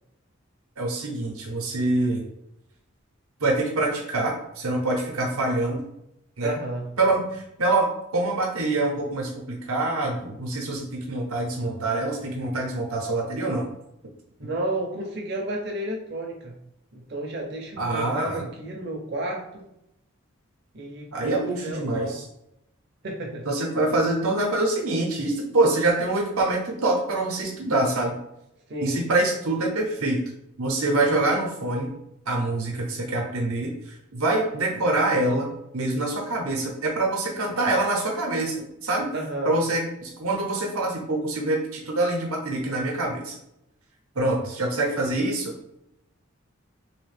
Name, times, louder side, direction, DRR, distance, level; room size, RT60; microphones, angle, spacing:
voice 1, 0.8-2.2 3.4-5.8 6.4-6.6 7.0-13.6 17.8-18.4 21.1-22.3 23.4-28.2 28.8-30.2 30.6-31.9 32.3-39.1 39.4-43.3 44.2-45.5, right 2 dB, 85° right, 0 dB, 0.8 m, -25 dB
voice 2, 6.4-6.9 14.4-16.5 16.9-19.6 20.7-22.2 23.0-23.5 28.7-29.0 39.1-39.5, right 1 dB, 50° right, 1 dB, 0.6 m, -32 dB
3.2 x 2.9 x 3.3 m, 0.83 s
head